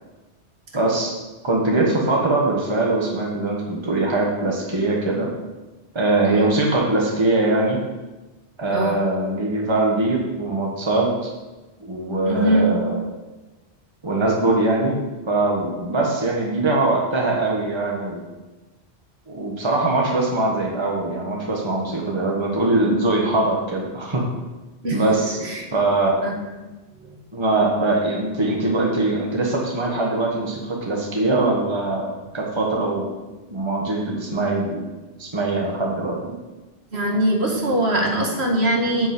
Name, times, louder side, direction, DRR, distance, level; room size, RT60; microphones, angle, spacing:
voice 1, 0.7-1.1 1.4-5.3 5.9-7.8 8.6-11.3 11.8-13.0 14.0-15.0 15.3-18.2 19.3-24.3 24.9-26.2 27.3-33.1 33.5-34.8 35.2-36.2, right 2 dB, 25° right, -2 dB, 1.5 m, -22 dB
voice 2, 12.3-12.7 24.8-25.0 25.4-25.7 26.2-26.3 36.9-39.1, right 1 dB, 70° right, 0 dB, 2.0 m, -21 dB
8.7 x 5.5 x 7.8 m, 1.1 s
omnidirectional pair, 1.1 m